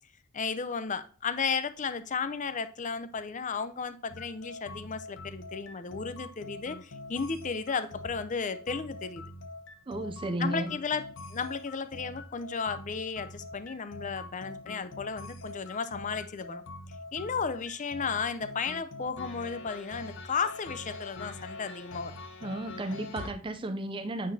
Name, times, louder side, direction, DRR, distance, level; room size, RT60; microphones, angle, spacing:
voice 1, 0.3-9.2 10.4-16.6 17.1-22.2, left 5 dB, 35° left, 0.6 m, -34 dB
sound 1, 4.1-23.3, left 2 dB, 60° left, 0.9 m, -44 dB
voice 2, 9.9-10.7 22.4-24.3, right 1 dB, 25° right, 0.4 m, -33 dB
8.4 x 6.0 x 2.7 m
head